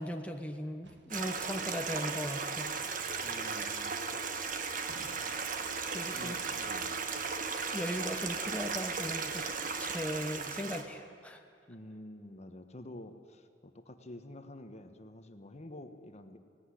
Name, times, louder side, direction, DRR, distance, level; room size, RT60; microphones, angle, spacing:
voice 1, 0.0-2.7 5.9-6.4 7.7-11.4, equal, 10° left, 4 dB, 1.1 m, -38 dB
sound 1, 0.8-1.4 4.9-5.7, right 1 dB, 80° right, 1.8 m, -54 dB
Stream, 1.1-10.8, right 5 dB, 50° right, 1.5 m, -36 dB
voice 2, 3.2-4.0 6.1-7.0 11.7-16.4, left 1 dB, 40° left, 8 dB, 1.2 m, -49 dB
17.5 x 16.5 x 9.8 m, 2.5 s
head